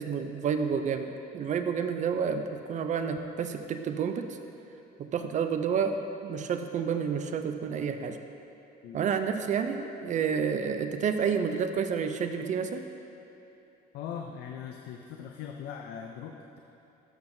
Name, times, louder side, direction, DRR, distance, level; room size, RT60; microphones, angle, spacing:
voice 1, 0.0-4.4 5.0-8.2 8.9-12.8, right 6 dB, 45° right, 7 dB, 0.4 m, -30 dB
voice 2, 13.9-16.6, left 8 dB, 80° left, 2 dB, 0.5 m, -40 dB
12.5 x 5.7 x 2.6 m, 2.9 s
cardioid pair, 110°, 17 cm